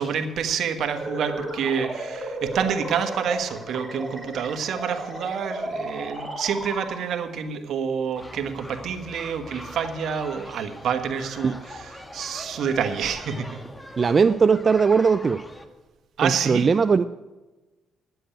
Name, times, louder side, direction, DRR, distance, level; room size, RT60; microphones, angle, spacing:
voice 1, 0.0-13.5 16.2-16.7, right 7 dB, 70° right, 7 dB, 1.3 m, -28 dB
sound 1, 0.8-7.3, right 1 dB, 10° right, 3.4 m, -34 dB
sound 2, 8.1-15.7, left 1 dB, 15° left, 1.3 m, -41 dB
voice 2, 14.0-15.4 16.2-17.0, right 5 dB, 40° right, 11 dB, 0.4 m, -19 dB
10.0 x 7.8 x 9.0 m, 1.2 s
cardioid pair, 90°, 0 cm